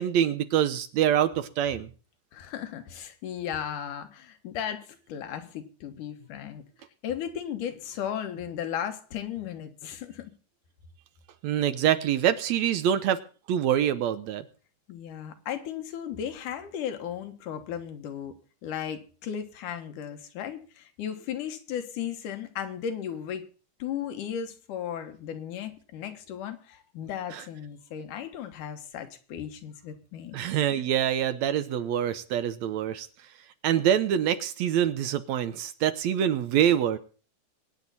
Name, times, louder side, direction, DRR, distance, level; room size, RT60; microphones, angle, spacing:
voice 1, 0.0-1.9 11.4-13.2 13.5-14.5 27.3-27.4 30.3-33.1 33.6-37.0, right 10 dB, 75° right, 1.9 m, -25 dB
voice 2, 2.3-6.6 7.0-10.3 14.9-18.3 18.6-23.4 23.8-30.4 30.7-30.8, left 9 dB, 85° left, 2.8 m, -35 dB
23.0 x 9.3 x 4.1 m
omnidirectional pair, 3.6 m